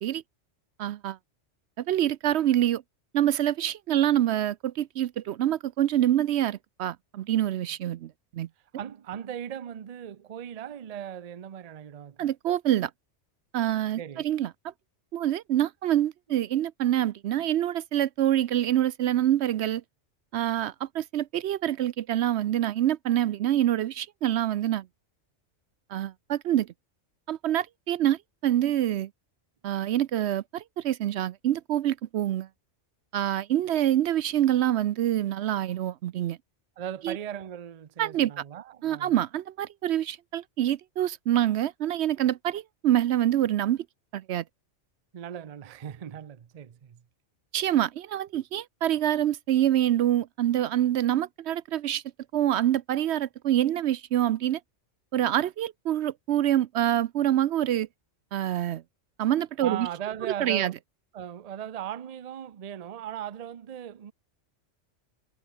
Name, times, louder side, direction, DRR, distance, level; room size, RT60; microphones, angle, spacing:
voice 1, 0.8-1.2 1.8-2.8 3.1-8.5 12.2-12.9 13.5-14.5 15.1-19.8 20.3-24.9 25.9-26.7 27.3-29.1 29.6-32.5 33.1-36.4 37.0-37.2 38.0-38.4 38.8-43.8 44.1-44.4 47.5-52.0 52.3-54.6 55.1-57.9 58.3-58.8 59.2-59.9 60.4-60.7, right 12 dB, 70° right, 0.8 m, -26 dB
voice 2, 8.7-12.3 14.0-14.3 36.8-39.2 45.1-47.0 59.6-60.8 61.1-64.1, right 10 dB, 45° right, 0.6 m, -38 dB
omnidirectional pair, 1.2 m